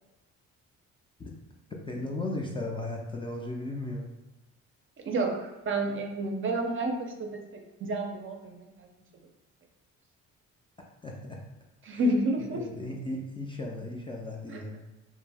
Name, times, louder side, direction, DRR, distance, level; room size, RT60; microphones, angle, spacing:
voice 1, 1.7-4.1 11.0-11.4 11.9-12.0 12.4-14.8, left 2 dB, 15° left, -1 dB, 0.4 m, -36 dB
voice 2, 5.0-8.9 11.8-12.7 14.5-14.8, right 1 dB, 45° right, 3 dB, 0.5 m, -30 dB
2.5 x 2.0 x 3.3 m, 1.0 s
cardioid pair, 90°, 30 cm